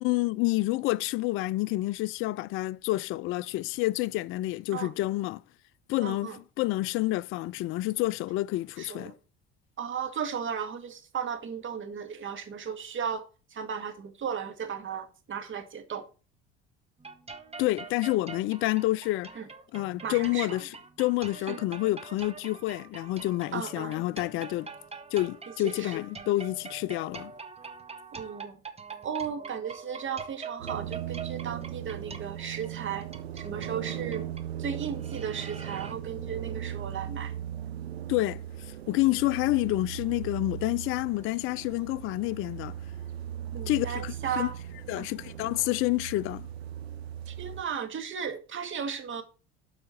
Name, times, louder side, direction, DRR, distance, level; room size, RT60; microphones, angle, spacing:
voice 1, 0.0-5.4 5.9-9.1 17.6-19.4 19.7-24.7 25.1-27.3 38.1-42.8 43.7-44.5 44.9-46.5, left 18 dB, 45° left, 0.4 m, -29 dB
voice 2, 6.0-6.4 8.8-9.1 9.8-13.2 13.5-16.0 19.4-19.5 20.0-20.6 21.5-21.6 23.5-23.9 25.6-26.0 28.1-28.6 29.0-33.1 33.3-34.3 34.6-37.3 43.5-44.5 45.0-45.1 47.3-49.2, right 7 dB, 40° right, 2.0 m, -35 dB
sound 1, 17.0-35.9, right 5 dB, 20° right, 1.3 m, -44 dB
sound 2, 30.6-47.6, right 11 dB, 85° right, 1.2 m, -38 dB
12.5 x 4.8 x 4.3 m
hypercardioid pair, 65°, 31 cm